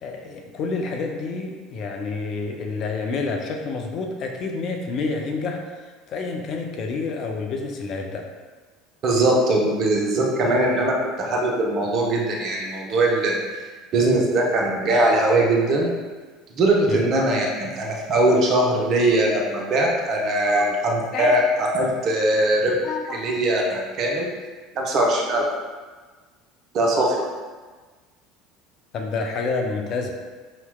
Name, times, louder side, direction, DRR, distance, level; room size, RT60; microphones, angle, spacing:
voice 1, 0.0-8.2 16.9-17.0 20.5-20.7 21.1-21.4 22.8-23.3 28.9-30.1, left 4 dB, 45° left, 3 dB, 0.5 m, -29 dB
voice 2, 9.0-13.4 13.9-15.9 16.6-22.8 23.1-24.3 24.7-25.4 26.7-27.2, right 1 dB, 45° right, -1 dB, 0.7 m, -21 dB
5.5 x 2.9 x 2.2 m, 1.4 s
figure-of-eight pair, 65°, 0 cm